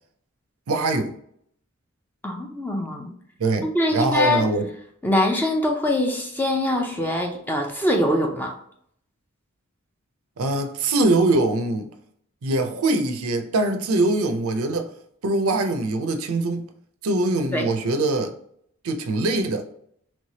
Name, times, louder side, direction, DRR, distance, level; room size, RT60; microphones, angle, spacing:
voice 1, 0.7-1.1 3.4-3.7 3.9-4.7 10.4-11.9 12.4-14.9 15.2-16.7 17.0-18.3 18.8-19.6, right 2 dB, 75° right, 0.5 m, -22 dB
voice 2, 2.2-3.1 3.7-4.4 5.0-8.5 17.5-17.7, left 1 dB, 10° left, 0.5 m, -23 dB
3.2 x 3.1 x 2.7 m
head